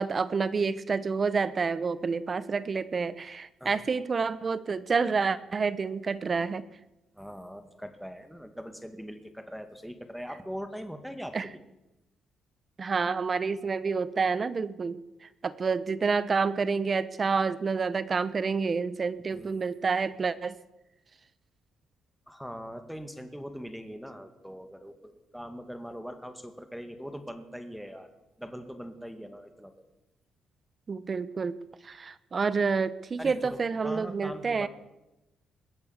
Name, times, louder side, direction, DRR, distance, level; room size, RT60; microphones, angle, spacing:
voice 1, 0.0-6.6 11.3-11.5 12.8-15.0 15.4-20.6 30.9-31.6 31.8-34.7, right 5 dB, 35° right, 17 dB, 0.9 m, -28 dB
voice 2, 7.2-11.4 19.3-19.6 22.3-28.1 28.4-29.7 33.2-34.7, equal, ahead, 8 dB, 2.1 m, -41 dB
21.0 x 8.1 x 8.1 m, 0.98 s
cardioid pair, 90°, 0 cm